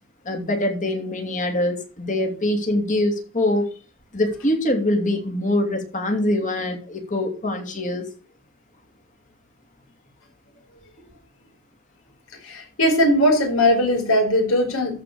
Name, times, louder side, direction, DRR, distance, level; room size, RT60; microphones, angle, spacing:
voice 1, 0.2-3.7 4.1-8.1, left 1 dB, 35° left, 3 dB, 2.9 m, -24 dB
voice 2, 12.4-15.0, left 1 dB, 75° left, 2 dB, 5.0 m, -19 dB
13.5 x 5.2 x 6.8 m, 0.36 s
head